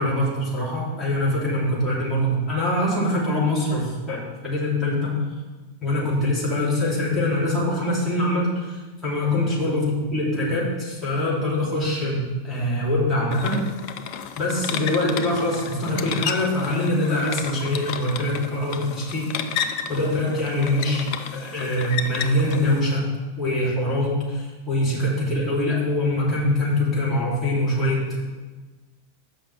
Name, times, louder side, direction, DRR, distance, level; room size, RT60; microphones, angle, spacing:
voice 1, 0.0-5.2 5.8-13.6 14.4-21.0 21.3-23.0 23.4-28.2, left 1 dB, 10° left, -7 dB, 3.2 m, -24 dB
sound 1, 13.3-22.8, left 8 dB, 45° left, 0.5 m, -32 dB
6.7 x 5.7 x 6.8 m, 1.3 s
figure-of-eight pair, 90°, 0 cm